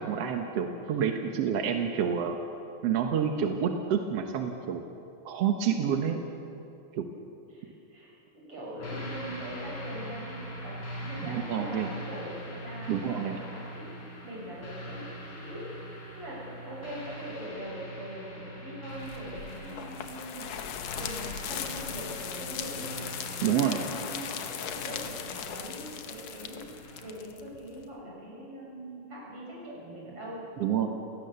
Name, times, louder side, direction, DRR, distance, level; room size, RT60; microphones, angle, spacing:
voice 1, 0.0-2.4 2.8-4.8 5.2-6.2 6.9-7.0 11.2-11.9 12.9-13.4 23.4-23.8 30.6-30.9, right 8 dB, 65° right, 4 dB, 1.7 m, -28 dB
voice 2, 7.5-13.9 14.2-15.1 15.4-16.4 16.7-22.9 23.5-26.7 27.0-30.4 30.8-30.9, equal, 40° right, -5 dB, 7.5 m, -42 dB
sound 1, 8.8-27.1, equal, 35° left, 3.9 m, -42 dB
sound 2, 19.0-27.9, left 8 dB, 65° left, 1.8 m, -38 dB
29.0 x 17.0 x 6.9 m, 2.7 s
omnidirectional pair, 4.1 m